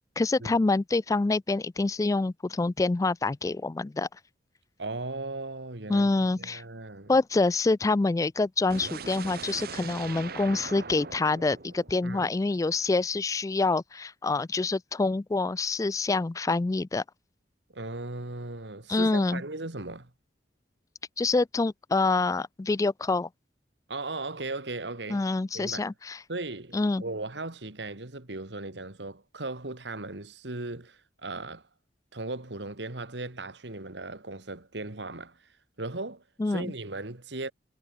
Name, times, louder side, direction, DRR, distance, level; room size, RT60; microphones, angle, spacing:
voice 1, 0.2-4.1 5.9-6.6 7.1-17.0 18.9-19.4 21.2-23.3 25.1-26.2 26.7-27.0 36.4-36.7, left 3 dB, 20° left, 0.3 m, -26 dB
voice 2, 4.8-7.1 12.0-12.3 17.7-20.1 23.9-25.3 25.5-25.9 26.3-31.7 32.1-35.5 35.8-37.5, right 2 dB, 75° right, 2.2 m, -37 dB
sound 1, 8.7-12.7, right 5 dB, 55° right, 1.4 m, -41 dB
head